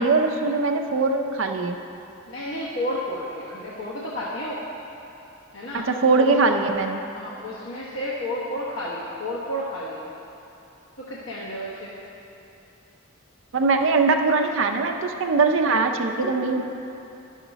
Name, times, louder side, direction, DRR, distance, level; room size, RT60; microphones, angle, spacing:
voice 1, 0.0-1.8 5.7-7.0 13.5-16.6, right 3 dB, 70° right, 4 dB, 0.5 m, -21 dB
voice 2, 2.3-4.6 5.5-5.9 6.2-6.3 7.1-10.1 11.1-11.9, left 1 dB, 70° left, -7 dB, 1.0 m, -31 dB
11.0 x 6.4 x 4.0 m, 2.9 s
head